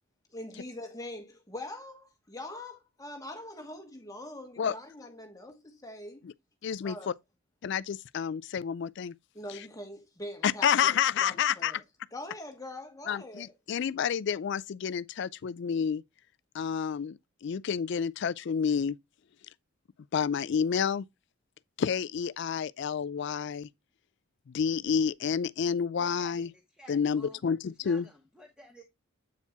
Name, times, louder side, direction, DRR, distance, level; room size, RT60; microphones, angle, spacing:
voice 1, 0.3-6.2 6.8-7.1 9.3-11.8 12.1-13.5, left 1 dB, 15° left, 1.3 m, -43 dB
voice 2, 6.6-7.1 7.6-9.1 10.4-11.8 13.1-16.0 16.5-19.0 20.1-21.0 21.8-23.7 24.5-26.5 26.9-28.1, left 7 dB, 55° left, 0.3 m, -29 dB
voice 3, 26.0-27.4 27.8-28.8, equal, 5° right, 1.2 m, -53 dB
8.4 x 4.4 x 3.5 m
head